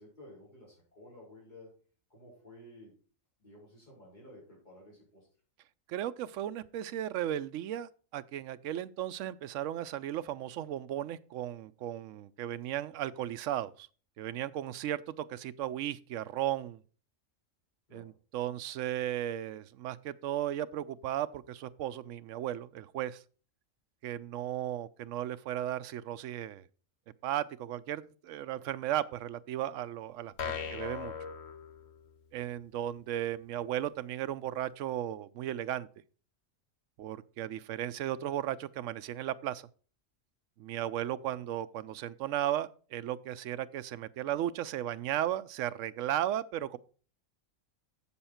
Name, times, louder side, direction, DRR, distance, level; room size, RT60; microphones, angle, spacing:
voice 1, 0.0-1.7 2.1-2.9 3.4-5.3 12.7-13.1 17.9-18.1 30.5-30.8 41.2-41.4, left 1 dB, 35° left, 4.8 m, -54 dB
voice 2, 5.9-13.9 14.2-16.8 17.9-23.2 24.0-26.6 27.2-31.1 32.3-35.9 37.0-39.7 40.6-46.8, right 12 dB, 75° right, 0.9 m, -35 dB
sound 1, 30.4-32.3, left 7 dB, 55° left, 1.1 m, -39 dB
7.8 x 7.2 x 4.3 m
omnidirectional pair, 1.4 m